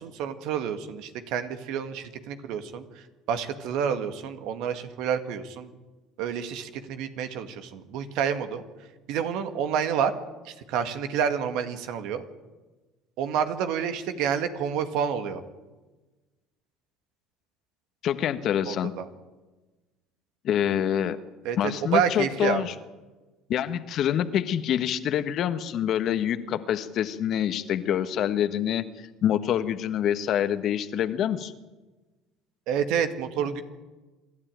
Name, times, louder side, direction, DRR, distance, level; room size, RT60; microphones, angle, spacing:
voice 1, 0.0-5.7 6.2-8.6 9.1-10.1 10.4-12.2 13.2-15.4 18.7-19.1 21.4-22.6 32.7-33.6, right 8 dB, 70° right, 9 dB, 2.0 m, -29 dB
voice 2, 18.0-18.9 20.4-21.2 21.6-22.7 23.5-28.8 29.2-31.5, left 10 dB, 55° left, 11 dB, 1.4 m, -26 dB
26.5 x 12.5 x 9.1 m, 1.2 s
hypercardioid pair, 75°, 0 cm